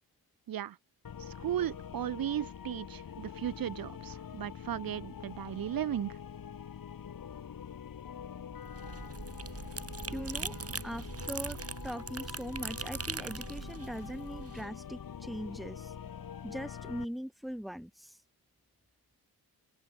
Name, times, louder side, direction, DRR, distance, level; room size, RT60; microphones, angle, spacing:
sound 1, 1.0-17.0, left 8 dB, 60° left, 5.0 m, -45 dB
voice 1, 1.2-6.2, right 11 dB, 60° right, 1.0 m, -36 dB
sound 2, 8.5-14.6, right 5 dB, 35° right, 3.9 m, -41 dB
voice 2, 10.1-10.5 10.8-11.6 11.8-15.9 16.4-18.2, equal, ahead, 1.6 m, -41 dB
open air
cardioid pair, 115°, 39 cm